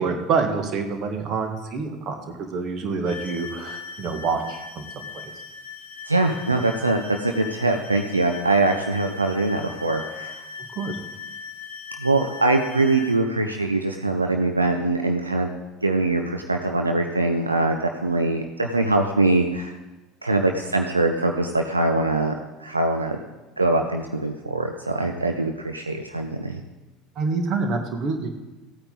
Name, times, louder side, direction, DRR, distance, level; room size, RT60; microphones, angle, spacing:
voice 1, 0.0-2.2 2.5-5.1 10.8-11.0 27.2-28.3, right 4 dB, 45° right, 5 dB, 1.7 m, -26 dB
sound 1, 3.1-13.2, left 5 dB, 70° left, 0.9 m, -39 dB
voice 2, 6.0-10.4 12.0-15.5 15.8-19.7 20.2-22.3 22.6-23.2 23.6-26.6, right 2 dB, 85° right, 4 dB, 0.6 m, -23 dB
16.0 x 8.9 x 4.1 m, 1.1 s
figure-of-eight pair, 70°, 0 cm